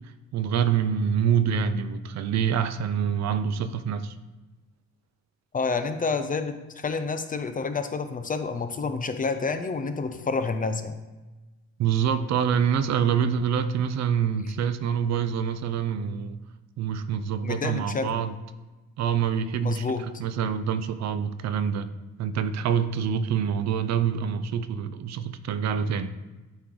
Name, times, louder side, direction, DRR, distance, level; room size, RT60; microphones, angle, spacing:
voice 1, 0.3-4.2 11.8-16.4 16.8-18.3 19.0-19.9 20.2-21.9 22.2-26.1, right 7 dB, 65° right, 12 dB, 0.4 m, -26 dB
voice 2, 5.5-11.0 17.4-18.3 19.6-20.0, left 4 dB, 30° left, 9 dB, 0.5 m, -29 dB
8.4 x 3.1 x 3.7 m, 1.2 s
cardioid pair, 90°, 30 cm